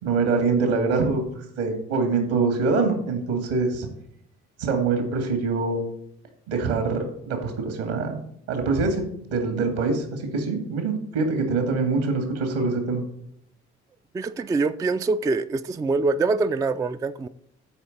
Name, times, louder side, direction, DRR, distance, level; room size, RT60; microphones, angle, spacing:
voice 1, 0.0-3.9 4.6-5.8 6.5-9.0 9.3-13.0, right 4 dB, 70° right, 2.1 m, -24 dB
voice 2, 14.1-17.3, right 3 dB, 10° right, 0.3 m, -24 dB
14.0 x 5.1 x 4.1 m
figure-of-eight pair, 50°, 34 cm